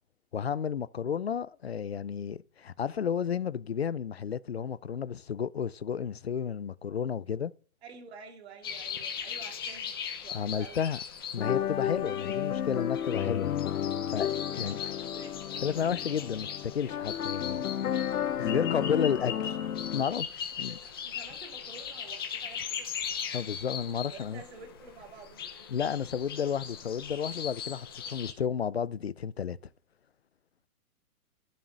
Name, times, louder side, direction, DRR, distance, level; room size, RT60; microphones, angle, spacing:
voice 1, 0.3-7.5 10.3-11.0 11.3-13.5 14.1-14.3 14.6-14.8 15.6-16.5 16.7-18.0 18.4-19.6 19.9-20.7 23.3-24.4 25.7-29.6, left 7 dB, 45° left, 0.4 m, -32 dB
voice 2, 7.8-9.9 10.2-10.9 14.6-15.4 18.4-19.0 20.6-22.9 24.1-25.4, right 5 dB, 45° right, 2.6 m, -49 dB
sound 1, 8.6-28.3, left 7 dB, 15° left, 0.9 m, -40 dB
sound 2, 11.4-20.0, left 10 dB, 70° left, 0.9 m, -32 dB
14.0 x 7.4 x 5.2 m
hypercardioid pair, 180°, 45 cm